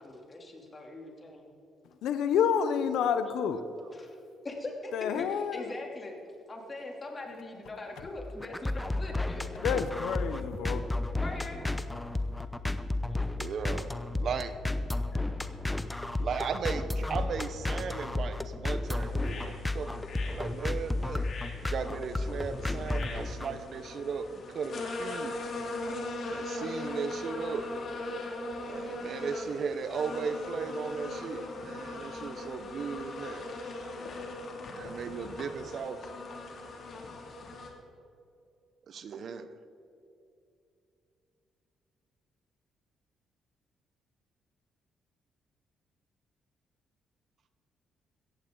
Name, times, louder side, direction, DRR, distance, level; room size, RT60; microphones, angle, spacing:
voice 1, 0.0-1.5 3.9-4.1 4.4-6.1 6.5-9.4 10.3-10.4 11.2-11.6 15.1-15.3, left 2 dB, 30° left, 1 dB, 2.9 m, -41 dB
voice 2, 2.0-3.6 4.9-5.7 9.6-10.8, left 7 dB, 80° left, 10 dB, 0.7 m, -28 dB
voice 3, 3.4-3.9 13.4-14.5 16.2-21.3 21.6-25.4 26.3-27.7 28.6-33.5 34.7-36.0 38.9-39.6, right 6 dB, 60° right, 11 dB, 0.8 m, -36 dB
sound 1, 8.2-23.6, left 2 dB, 10° left, 0.8 m, -32 dB
sound 2, 18.9-37.7, left 2 dB, 55° left, 2.6 m, -40 dB
16.5 x 15.0 x 3.9 m, 2.6 s
cardioid pair, 90°, 0 cm